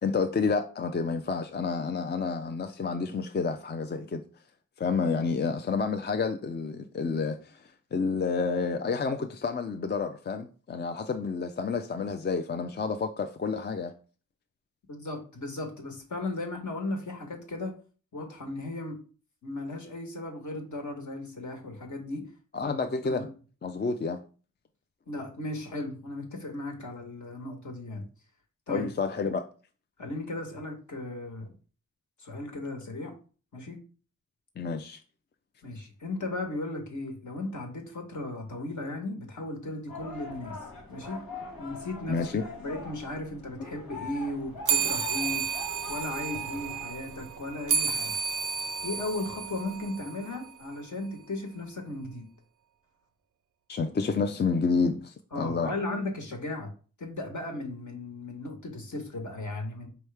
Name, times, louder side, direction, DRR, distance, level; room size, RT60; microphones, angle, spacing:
voice 1, 0.0-4.2 4.8-13.9 22.5-23.3 23.6-24.2 28.7-29.4 34.6-35.0 42.1-42.4 53.7-55.7, left 4 dB, 30° left, 0.4 m, -29 dB
voice 2, 14.9-17.7 18.1-19.0 19.4-22.3 22.6-22.8 23.0-23.2 25.1-28.0 28.7-28.9 30.0-31.5 32.2-33.1 33.5-33.8 35.6-40.6 40.9-41.2 41.6-42.3 42.6-45.4 45.9-48.1 48.8-52.3 55.3-56.7 57.0-59.9, left 2 dB, 60° left, 1.3 m, -36 dB
sound 1, 39.9-46.9, left 4 dB, 90° left, 1.2 m, -42 dB
sound 2, 44.6-50.5, right 6 dB, 65° right, 0.4 m, -31 dB
4.6 x 3.1 x 3.3 m
cardioid pair, 55°, 33 cm